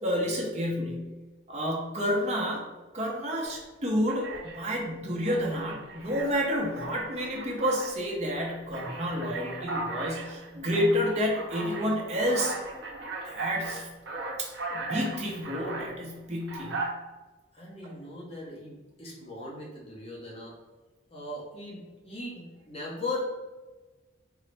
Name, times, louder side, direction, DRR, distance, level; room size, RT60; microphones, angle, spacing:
voice 1, 0.0-1.1 1.5-2.6 2.9-12.5 13.2-13.9 14.4-16.9, equal, 35° right, -2 dB, 0.7 m, -30 dB
Alarm, 3.4-3.6 4.1-4.7 5.3-7.9 8.3-15.9 16.4-16.9, right 3 dB, 75° right, 0.7 m, -38 dB
voice 2, 17.5-20.5 21.1-23.3, left 2 dB, 30° left, -4 dB, 0.8 m, -38 dB
3.8 x 2.1 x 3.2 m, 1.2 s
head